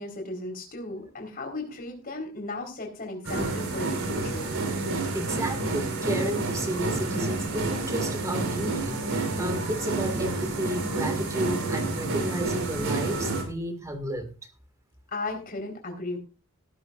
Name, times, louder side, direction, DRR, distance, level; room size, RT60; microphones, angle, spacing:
voice 1, 0.0-4.5 15.1-16.2, left 2 dB, 40° left, 3 dB, 4.3 m, -35 dB
sound 1, 3.2-13.4, right 2 dB, 70° right, 4.1 m, -29 dB
voice 2, 5.1-14.3, right 1 dB, 15° right, 7 dB, 2.0 m, -32 dB
18.5 x 11.5 x 2.5 m, 0.32 s
head